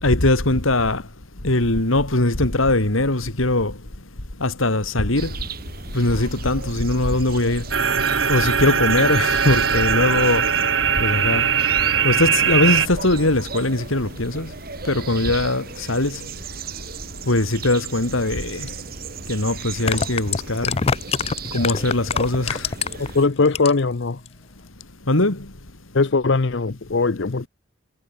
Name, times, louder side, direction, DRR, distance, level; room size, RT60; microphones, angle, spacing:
voice 1, 0.0-1.0 1.4-3.7 4.4-5.3 5.9-7.6 8.3-10.5 11.0-11.5 12.0-14.5 14.9-16.2 17.3-18.7 19.3-20.7 21.5-22.7 25.1-25.4, left 2 dB, 90° left, 2.8 m, -21 dB
sound 1, 5.2-23.3, right 5 dB, 45° right, 1.6 m, -36 dB
sound 2, 7.7-12.9, right 7 dB, 65° right, 2.0 m, -20 dB
sound 3, 18.7-18.8 19.7-23.1 23.4-23.9 24.3-24.4, left 5 dB, 30° left, 0.4 m, -24 dB
voice 2, 23.0-24.2 25.9-27.5, left 3 dB, 65° left, 0.7 m, -20 dB
head